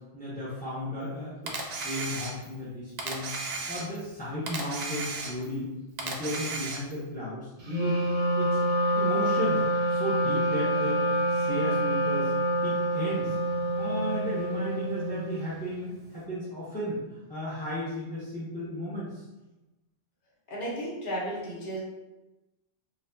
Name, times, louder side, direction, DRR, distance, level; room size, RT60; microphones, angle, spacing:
voice 1, 0.1-3.3 3.7-5.7 6.0-8.0 8.4-8.6 8.9-11.0 11.3-12.3 12.6-13.3 13.8-19.2, equal, 10° left, -9 dB, 0.5 m, -34 dB
Camera, 1.5-2.6 3.0-4.1 4.5-5.6 6.0-7.0, right 3 dB, 75° right, 0.3 m, -35 dB
Wind instrument woodwind instrument, 7.6-15.5, right 1 dB, 45° right, 0.7 m, -27 dB
voice 2, 20.5-21.8, right 1 dB, 45° left, -5 dB, 1.0 m, -33 dB
4.1 x 2.4 x 2.7 m, 1.0 s
omnidirectional pair, 1.4 m